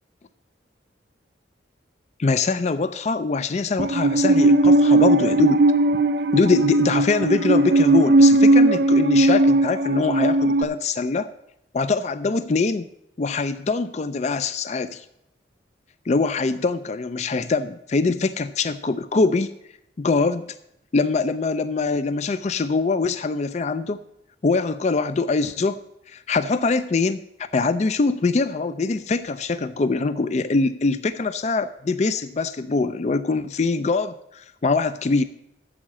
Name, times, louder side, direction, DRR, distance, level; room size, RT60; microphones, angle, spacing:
voice 1, 2.2-5.6 6.3-11.3 11.7-12.9 13.2-15.0 16.1-19.5 20.0-20.5 20.9-24.0 24.4-25.8 26.1-27.2 27.5-35.2, left 3 dB, 35° left, 13 dB, 0.4 m, -23 dB
Musical instrument, 3.8-10.6, right 2 dB, 55° right, 0.6 m, -17 dB
8.6 x 7.2 x 7.5 m, 0.78 s
head